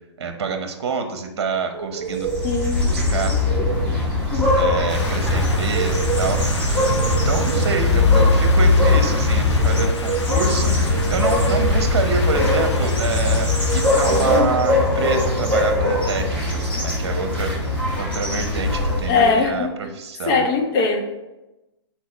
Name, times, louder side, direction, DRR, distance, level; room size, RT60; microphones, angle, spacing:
voice 1, 0.2-2.3 2.9-3.4 4.3-20.4, right 4 dB, 65° right, 5 dB, 1.0 m, -27 dB
sound 1, 1.7-2.6 3.1-3.9 5.5-6.5 6.9-8.0 9.4-10.4 10.9-11.9 13.5-14.5, right 6 dB, 80° right, 0.5 m, -29 dB
sound 2, 2.1-19.4, left 2 dB, 10° left, 1.9 m, -20 dB
voice 2, 2.4-2.9 4.3-4.5 19.1-19.5 20.3-21.0, left 4 dB, 30° left, 1 dB, 1.1 m, -19 dB
sound 3, 4.9-14.4, left 4 dB, 80° left, 1.0 m, -33 dB
4.6 x 4.6 x 4.5 m, 0.98 s
hypercardioid pair, 125°, 15 cm